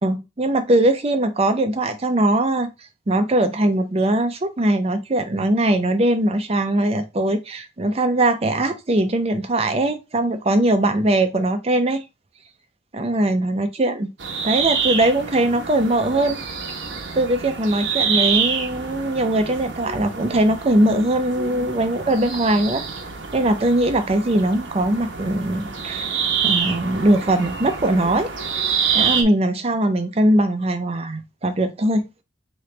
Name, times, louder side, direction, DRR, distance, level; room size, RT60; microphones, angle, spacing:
voice 1, 0.0-2.7 3.1-12.0 12.9-14.1 14.4-16.4 17.1-22.8 23.3-28.3 28.9-32.0, right 1 dB, 30° right, 0.5 m, -20 dB
sound 1, 14.2-29.2, right 6 dB, 60° right, 0.8 m, -26 dB
3.8 x 3.1 x 3.2 m
head